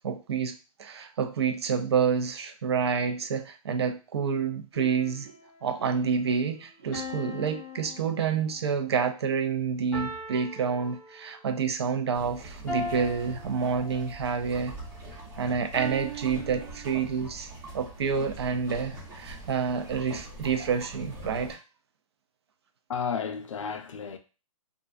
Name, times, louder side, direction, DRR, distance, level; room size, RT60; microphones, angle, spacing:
voice 1, 0.0-5.3 5.6-14.8 15.4-17.5 17.7-21.6, right 6 dB, 45° right, 0.4 m, -28 dB
sound 1, 4.7-5.6 6.9-8.8 9.9-11.5 12.7-14.3 15.7-17.4, equal, 10° left, 0.8 m, -40 dB
sound 2, 12.1-21.5, right 2 dB, 30° right, 0.9 m, -43 dB
voice 2, 22.9-24.2, left 6 dB, 60° left, 0.4 m, -32 dB
2.5 x 2.3 x 2.3 m
hypercardioid pair, 170°, 18 cm